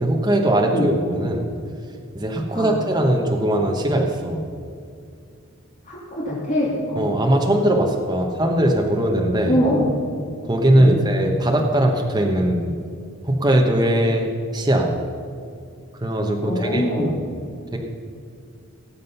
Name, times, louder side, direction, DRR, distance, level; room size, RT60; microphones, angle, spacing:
voice 1, 0.0-1.4 2.1-4.4 7.0-9.6 10.4-12.7 13.2-14.9 16.0-17.1 17.7-17.8, right 1 dB, 20° right, 1 dB, 1.1 m, -20 dB
voice 2, 5.9-7.1 9.4-9.9 10.8-11.0 16.4-17.1, left 1 dB, 35° left, -6 dB, 3.0 m, -23 dB
19.0 x 7.7 x 5.6 m, 2.4 s
head